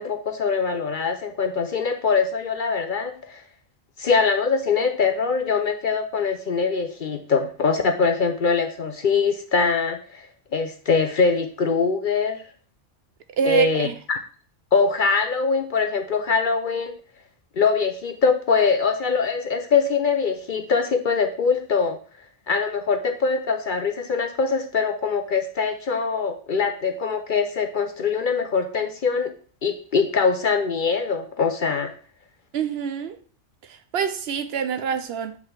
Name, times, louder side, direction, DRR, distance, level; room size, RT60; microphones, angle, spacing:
voice 1, 0.0-3.4 4.0-10.2 10.5-12.4 13.4-14.2 14.7-16.9 17.6-22.0 22.5-29.3 29.6-31.9, left 5 dB, 55° left, 0.7 m, -23 dB
voice 2, 13.4-13.9 32.5-33.2 33.9-35.4, right 6 dB, 65° right, 0.8 m, -25 dB
8.2 x 3.7 x 3.3 m
omnidirectional pair, 1.2 m